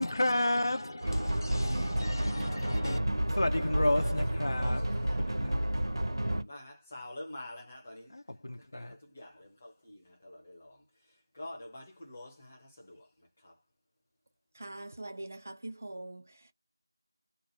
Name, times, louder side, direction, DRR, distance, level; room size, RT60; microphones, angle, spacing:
voice 1, 0.0-3.0 3.3-5.6 8.1-9.0, left 1 dB, 55° left, 0.4 m, -32 dB
sound 1, 1.0-6.4, right 1 dB, 60° right, 0.7 m, -30 dB
voice 2, 4.4-5.2 5.8-8.1 8.7-10.8 11.3-13.1 13.4-13.5, left 1 dB, 20° left, 0.8 m, -47 dB
voice 3, 14.5-16.5, right 2 dB, 30° right, 0.3 m, -43 dB
2.4 x 2.1 x 3.1 m
figure-of-eight pair, 175°, 2 cm